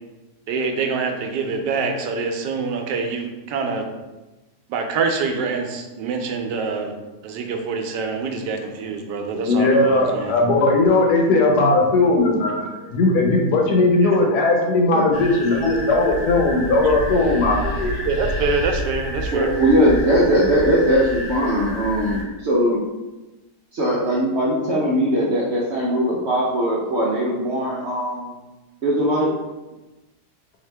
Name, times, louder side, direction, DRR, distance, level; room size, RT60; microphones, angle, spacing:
voice 1, 0.5-3.9 4.7-7.0 7.2-10.3 14.0-14.1 16.8-16.9 18.0-19.5, right 4 dB, 85° right, 4 dB, 1.2 m, -25 dB
voice 2, 9.3-17.9, left 2 dB, 70° left, 1 dB, 1.2 m, -18 dB
sound 1, 15.1-22.2, equal, 10° left, 0.8 m, -29 dB
voice 3, 19.3-22.8 23.7-28.3 28.8-29.3, equal, 60° right, -5 dB, 0.7 m, -20 dB
4.0 x 2.8 x 3.2 m, 1.1 s
omnidirectional pair, 1.8 m